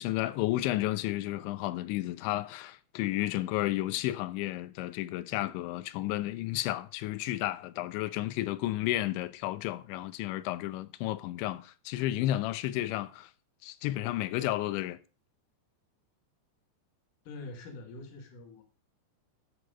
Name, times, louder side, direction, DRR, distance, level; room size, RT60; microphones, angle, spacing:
voice 1, 0.0-13.3 13.6-15.0, left 15 dB, 85° left, 3.1 m, -32 dB
voice 2, 17.2-18.6, left 2 dB, 55° left, 3.0 m, -44 dB
13.0 x 6.7 x 5.0 m
omnidirectional pair, 5.2 m